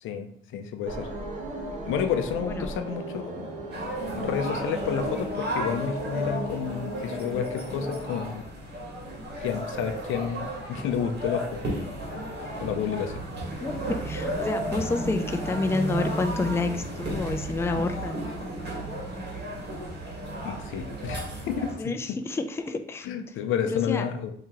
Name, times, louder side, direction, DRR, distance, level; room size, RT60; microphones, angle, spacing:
voice 1, 0.0-1.1 1.9-3.5 4.2-8.4 9.4-11.8 12.6-13.2 20.4-22.2 23.0-24.3, left 8 dB, 80° left, 7 dB, 0.5 m, -30 dB
sound 1, 0.8-8.2, right 1 dB, 40° right, 1.0 m, -36 dB
voice 2, 2.4-2.7 13.6-18.3 21.8-23.1 23.7-24.1, left 3 dB, 15° left, 7 dB, 0.3 m, -29 dB
sound 2, 3.7-21.7, right 1 dB, 55° right, 1.4 m, -33 dB
2.9 x 2.8 x 3.6 m, 0.67 s
cardioid pair, 90°, 20 cm